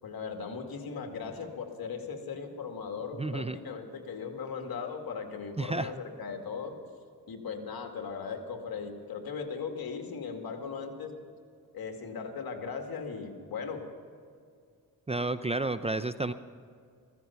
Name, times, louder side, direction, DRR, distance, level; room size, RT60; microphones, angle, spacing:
voice 1, 0.0-6.8 7.3-11.1 11.7-13.8, left 5 dB, 65° left, 4 dB, 2.2 m, -38 dB
voice 2, 3.2-3.6 5.6-5.9 15.1-16.3, right 2 dB, 15° right, 12 dB, 0.5 m, -31 dB
15.0 x 14.0 x 5.8 m, 2.2 s
cardioid pair, 75°, 38 cm